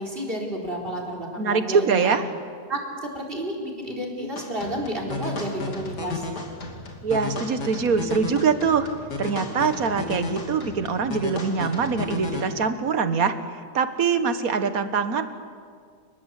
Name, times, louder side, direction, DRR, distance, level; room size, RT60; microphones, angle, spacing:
voice 1, 0.0-2.1 2.7-6.3, right 1 dB, 35° right, -1 dB, 4.5 m, -31 dB
voice 2, 1.4-2.3 7.0-8.9 9.2-13.3 13.7-15.3, right 5 dB, 60° right, 10 dB, 1.8 m, -23 dB
sound 1, 4.4-12.4, left 3 dB, 80° left, 3.4 m, -33 dB
28.5 x 20.5 x 8.3 m, 2.1 s
omnidirectional pair, 1.7 m